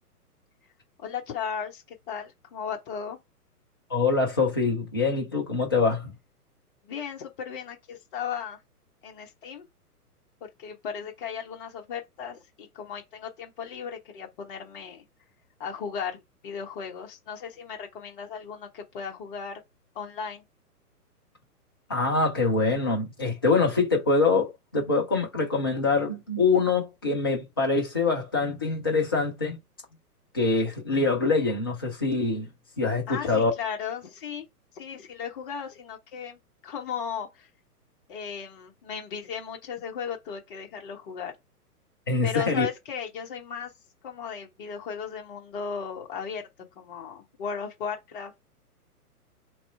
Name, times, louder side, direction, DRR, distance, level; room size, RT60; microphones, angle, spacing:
voice 1, 1.0-3.2 6.8-8.6 9.0-9.6 10.6-15.0 15.6-19.6 19.9-20.4 33.1-34.4 34.7-37.5 38.1-41.3 42.2-43.7 44.0-46.4 46.8-48.3, left 7 dB, 35° left, 1.1 m, -36 dB
voice 2, 3.9-6.1 21.9-29.6 30.3-32.5 32.8-33.5 42.1-42.7, left 3 dB, 15° left, 0.4 m, -24 dB
3.1 x 2.9 x 4.4 m
figure-of-eight pair, 120°, 47 cm